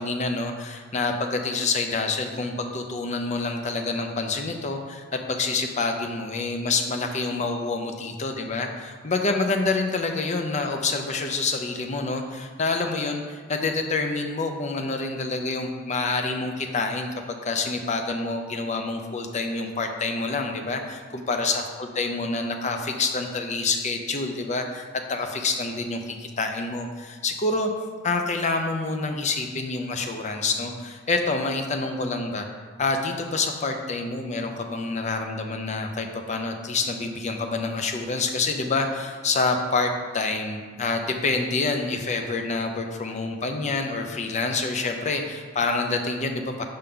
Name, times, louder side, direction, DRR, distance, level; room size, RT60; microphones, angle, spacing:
voice 1, 0.0-27.7 28.0-32.5 32.8-46.6, left 3 dB, 35° left, 4 dB, 0.6 m, -27 dB
5.1 x 3.8 x 5.7 m, 1.5 s
head